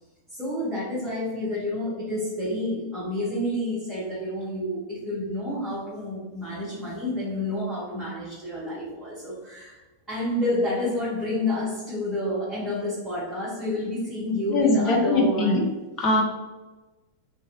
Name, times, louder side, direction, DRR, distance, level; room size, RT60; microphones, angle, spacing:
voice 1, 0.3-9.8 10.1-15.7, left 1 dB, 10° right, -11 dB, 1.1 m, -29 dB
voice 2, 14.5-15.6 16.0-16.2, left 2 dB, 35° left, 0 dB, 0.7 m, -21 dB
2.9 x 2.6 x 2.6 m, 1.2 s
figure-of-eight pair, 90°, 0 cm